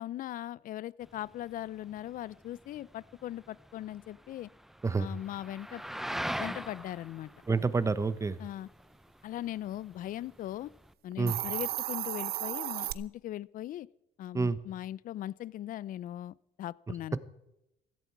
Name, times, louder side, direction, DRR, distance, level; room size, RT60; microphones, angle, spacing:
voice 1, 0.0-4.5 5.0-5.8 6.4-7.3 8.4-8.7 9.2-10.7 11.0-13.9 14.2-17.2, left 13 dB, 55° left, 22 dB, 0.5 m, -39 dB
sound 1, 1.0-10.9, equal, ahead, 0.5 m, -43 dB
voice 2, 7.5-8.4 11.2-11.4 14.3-14.6, right 4 dB, 15° right, 15 dB, 1.0 m, -28 dB
Hiss, 11.1-12.9, right 14 dB, 65° right, 0.8 m, -34 dB
16.5 x 15.0 x 4.6 m, 0.87 s
cardioid pair, 110°, 17 cm